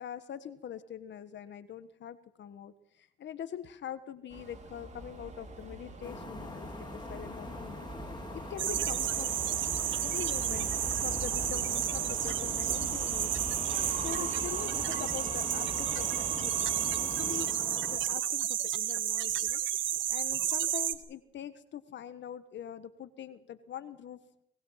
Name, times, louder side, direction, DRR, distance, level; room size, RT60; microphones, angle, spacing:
voice 1, 0.0-7.8 8.3-9.4 10.0-10.7 11.0-13.3 13.9-19.6 20.1-24.2, left 9 dB, 65° left, 12 dB, 1.4 m, -43 dB
Subway metro underground, 4.3-17.4, right 3 dB, 35° right, 5.4 m, -42 dB
sound 1, 6.0-18.0, left 3 dB, 20° left, 2.5 m, -44 dB
sound 2, 8.6-20.9, right 11 dB, 75° right, 1.6 m, -31 dB
24.5 x 20.5 x 5.8 m, 0.75 s
cardioid pair, 90°, 20 cm